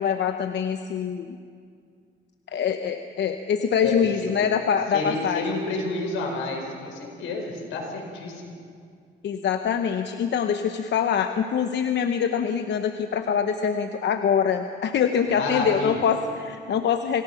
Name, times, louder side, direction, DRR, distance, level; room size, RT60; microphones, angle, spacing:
voice 1, 0.0-1.4 2.5-5.6 9.2-17.2, left 7 dB, 60° left, 7 dB, 0.9 m, -24 dB
voice 2, 3.8-4.3 4.9-8.5 15.4-16.1, left 2 dB, 85° left, 1 dB, 5.0 m, -30 dB
26.5 x 18.5 x 5.8 m, 2.2 s
cardioid pair, 90°, 20 cm